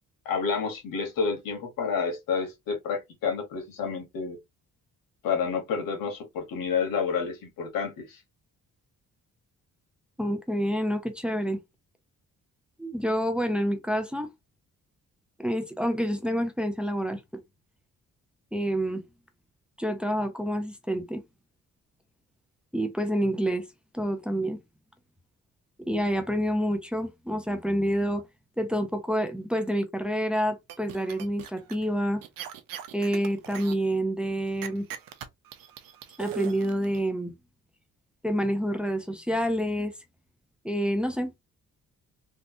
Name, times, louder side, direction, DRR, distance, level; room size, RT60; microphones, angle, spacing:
voice 1, 0.2-4.4 5.2-8.2, left 5 dB, 90° left, 1.4 m, -29 dB
voice 2, 10.2-11.6 12.8-14.3 15.4-17.2 18.5-19.0 19.8-21.2 22.7-23.6 23.9-24.6 25.8-28.2 28.6-32.2 32.9-34.9 36.2-37.3 38.2-39.9 40.6-41.4, equal, 5° right, 0.6 m, -28 dB
sound 1, 30.7-31.8 32.2-33.7 34.6-37.0, right 11 dB, 85° right, 0.6 m, -39 dB
3.4 x 2.4 x 2.7 m
cardioid pair, 90°, 33 cm